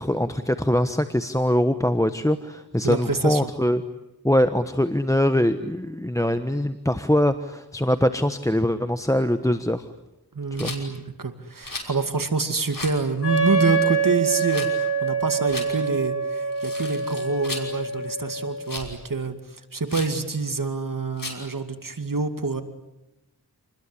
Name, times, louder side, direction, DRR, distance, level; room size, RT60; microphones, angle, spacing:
voice 1, 0.0-3.8 4.2-9.8 10.6-10.7, left 1 dB, 10° left, 10 dB, 1.2 m, -22 dB
voice 2, 2.8-3.5 10.3-22.6, right 4 dB, 55° right, 8 dB, 2.3 m, -27 dB
Rattle, 10.5-10.8 11.6-11.9 12.7-13.0 14.4-14.7 15.4-15.7 16.5-17.7 18.6-18.9 19.9-20.2 21.2-21.5, left 3 dB, 60° left, 5.7 m, -35 dB
Wind instrument woodwind instrument, 13.2-18.8, right 4 dB, 85° left, 6.5 m, -25 dB
29.0 x 21.0 x 9.9 m, 0.95 s
wide cardioid pair, 55°, 38 cm